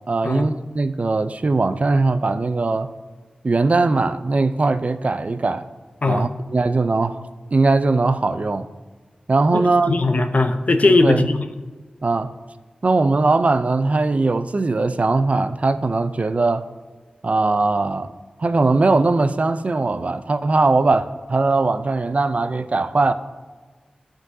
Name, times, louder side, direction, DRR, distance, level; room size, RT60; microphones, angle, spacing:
voice 1, 0.1-2.9 3.4-5.7 6.1-7.2 7.5-8.7 9.3-9.9 10.9-11.3 12.0-12.3 12.8-16.7 17.2-18.1 18.4-23.1, right 3 dB, 55° right, 0.4 m, -20 dB
voice 2, 9.5-11.4, left 2 dB, 60° left, 0.6 m, -19 dB
11.5 x 3.8 x 2.7 m
cardioid pair, 45°, 3 cm